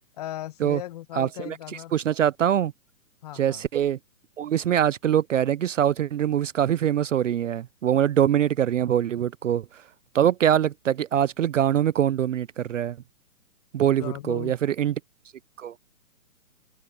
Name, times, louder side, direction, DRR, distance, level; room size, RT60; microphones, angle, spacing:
voice 1, 0.2-1.9 3.2-3.6 13.8-14.6, left 13 dB, 25° left, 1.2 m, -37 dB
voice 2, 1.1-1.6 1.9-2.7 3.3-4.0 4.4-9.8 10.1-13.0 13.7-14.9 15.6-15.7, right 10 dB, 55° right, 0.5 m, -23 dB
hypercardioid pair, 160°, 45 cm